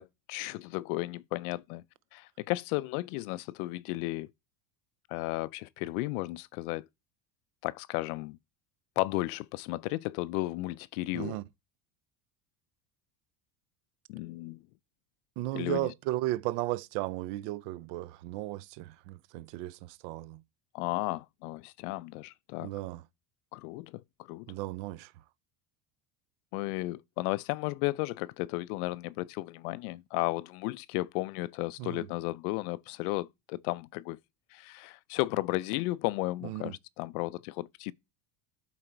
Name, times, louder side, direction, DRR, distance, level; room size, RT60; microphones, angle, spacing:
voice 1, 0.0-1.8 2.1-4.3 5.1-6.9 7.6-8.4 9.0-11.4 14.1-14.6 15.5-15.9 20.7-22.7 23.5-24.5 26.5-34.2 34.5-37.9, left 20 dB, 80° left, 0.5 m, -34 dB
voice 2, 15.4-20.4 22.6-23.0 24.5-25.1 31.8-32.1 36.4-36.7, right 17 dB, 60° right, 0.5 m, -35 dB
12.0 x 4.1 x 4.5 m
cardioid pair, 170°, 44 cm